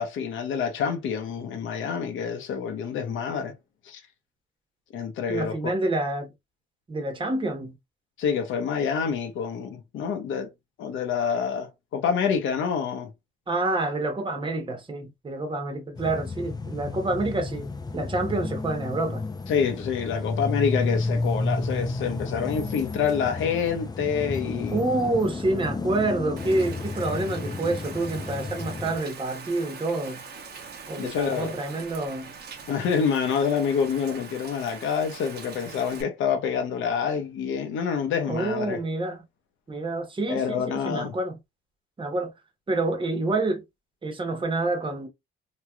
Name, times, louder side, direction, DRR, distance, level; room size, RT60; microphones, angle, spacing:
voice 1, 0.0-3.5 3.9-4.0 4.9-5.7 8.2-10.5 10.8-13.1 19.5-24.8 31.0-31.5 32.7-38.8 40.3-41.1, left 7 dB, 80° left, 0.9 m, -27 dB
voice 2, 5.3-6.3 6.9-7.8 13.5-17.7 17.9-19.2 24.7-30.2 30.9-32.3 38.3-39.2 39.7-41.4 42.0-42.3 42.7-43.6 44.0-45.1, right 2 dB, 25° right, 1.1 m, -28 dB
sound 1, 15.9-29.0, left 3 dB, 20° left, 0.5 m, -32 dB
Rain, 26.4-36.0, right 5 dB, 55° right, 0.9 m, -42 dB
3.1 x 3.0 x 2.3 m
cardioid pair, 90°, 20 cm